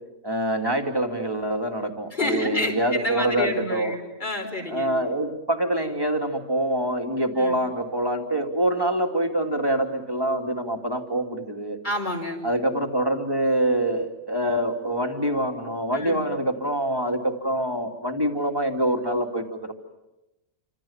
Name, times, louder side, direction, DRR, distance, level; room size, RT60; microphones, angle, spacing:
voice 1, 0.2-4.0 4.7-11.8 12.4-19.7, right 1 dB, 15° right, 4 dB, 2.9 m, -25 dB
voice 2, 2.1-4.9 7.3-7.6 11.8-12.4 15.9-16.2, left 2 dB, 35° left, 3 dB, 5.1 m, -29 dB
29.5 x 26.5 x 7.4 m, 0.94 s
omnidirectional pair, 1.4 m